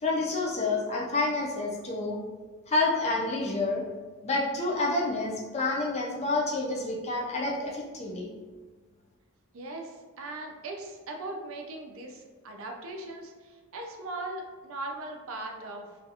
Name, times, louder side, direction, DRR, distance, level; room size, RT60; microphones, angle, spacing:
voice 1, 0.0-2.2 2.7-3.8 4.2-8.3, left 2 dB, 30° left, -2 dB, 0.4 m, -28 dB
voice 2, 9.5-15.9, right 2 dB, 65° right, 2 dB, 0.4 m, -39 dB
2.4 x 2.3 x 2.7 m, 1.4 s
head